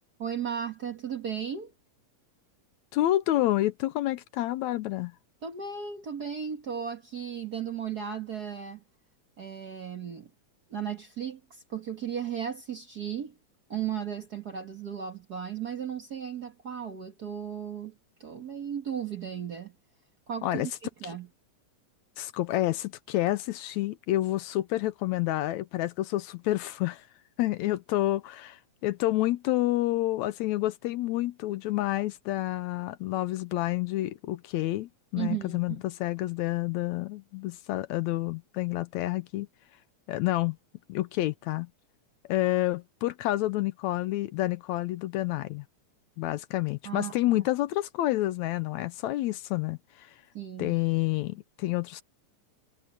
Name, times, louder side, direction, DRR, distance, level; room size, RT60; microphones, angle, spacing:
voice 1, 0.2-1.7 5.4-8.8 9.4-10.3 10.7-13.4 13.7-19.7 20.3-20.7 21.0-21.3 35.2-35.8 46.8-47.5 50.3-50.8, right 8 dB, 45° right, 1.4 m, -35 dB
voice 2, 2.9-5.1 20.4-20.7 22.2-27.0 27.4-39.5 40.1-40.6 40.9-41.7 42.3-45.6 46.2-50.1 50.6-52.0, left 16 dB, 80° left, 1.9 m, -29 dB
omnidirectional pair, 3.5 m